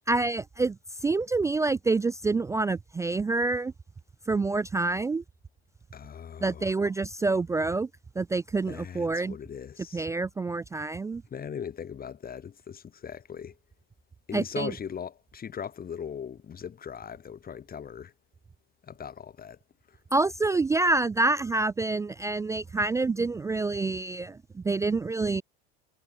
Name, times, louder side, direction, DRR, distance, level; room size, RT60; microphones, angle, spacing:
voice 1, 0.1-0.8 1.0-3.7 4.3-5.2 6.4-7.9 8.2-9.4 9.9-11.2 14.3-14.7 20.1-25.4, right 3 dB, 10° right, 0.3 m, -27 dB
voice 2, 5.9-6.7 8.6-10.1 11.3-13.6 14.3-18.1 18.8-19.6 19.9-20.0, left 8 dB, 30° left, 4.0 m, -39 dB
supercardioid pair, 110°, 31 cm